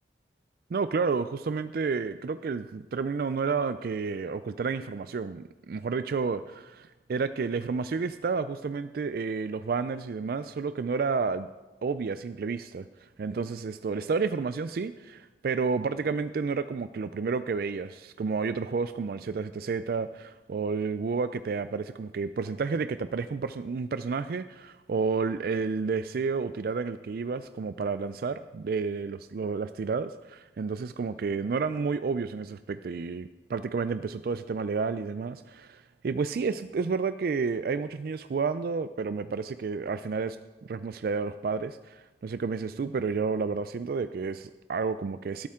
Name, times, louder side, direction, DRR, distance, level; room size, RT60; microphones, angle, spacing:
voice 1, 0.7-11.5 11.8-45.5, right 4 dB, 55° right, 12 dB, 0.3 m, -31 dB
19.5 x 8.7 x 3.7 m, 1.1 s
head